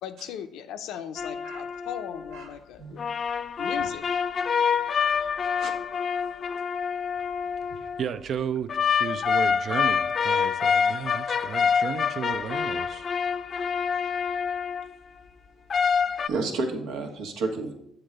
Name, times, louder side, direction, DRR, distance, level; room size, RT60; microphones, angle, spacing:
voice 1, 0.0-3.1 3.6-4.0, left 9 dB, 85° left, 0.6 m, -38 dB
sound 1, 1.2-2.4 3.0-8.0 8.7-14.9 15.7-16.3, left 6 dB, 45° left, 0.3 m, -26 dB
voice 2, 8.0-8.7 9.0-13.1, right 8 dB, 60° right, 0.4 m, -33 dB
voice 3, 16.3-17.7, right 3 dB, 90° right, 1.3 m, -31 dB
7.9 x 3.8 x 6.5 m
cardioid pair, 105°, 0 cm